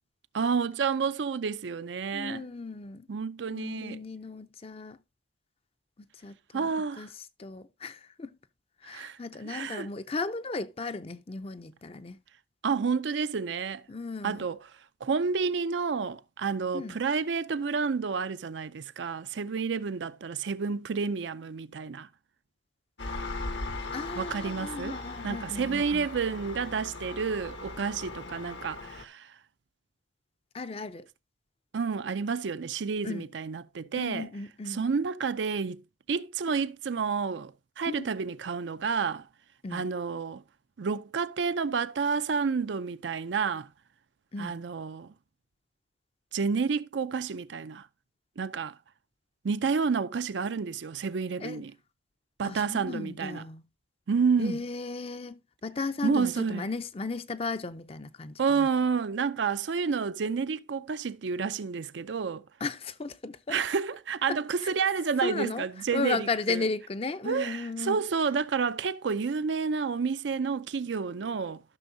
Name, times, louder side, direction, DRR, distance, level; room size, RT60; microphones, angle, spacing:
voice 1, 0.3-2.4 3.1-4.0 6.5-7.1 8.8-9.2 9.4-9.9 12.6-13.9 14.2-14.6 15.0-22.1 24.2-25.0 25.2-29.3 31.7-34.3 34.7-35.8 36.1-39.3 39.7-40.4 40.8-43.7 44.4-45.1 46.3-47.9 48.4-48.7 49.4-51.7 52.4-53.4 54.1-54.6 56.0-56.7 58.4-62.4 63.5-66.7 67.2-71.6, right 5 dB, 75° right, 0.5 m, -30 dB
voice 2, 2.1-3.1 3.5-5.0 6.0-7.1 7.4-8.4 8.8-12.2 13.9-14.4 16.7-17.0 23.9-26.1 30.5-31.1 33.0-33.2 34.0-34.8 37.9-38.1 39.6-39.9 44.3-44.6 51.4-51.6 52.4-53.6 54.4-58.7 62.6-63.6 64.3-64.7 65.2-65.7 65.9-68.0, left 3 dB, 30° left, 0.5 m, -35 dB
Engine, 23.0-29.0, left 3 dB, 75° left, 1.2 m, -38 dB
14.0 x 6.2 x 2.7 m
head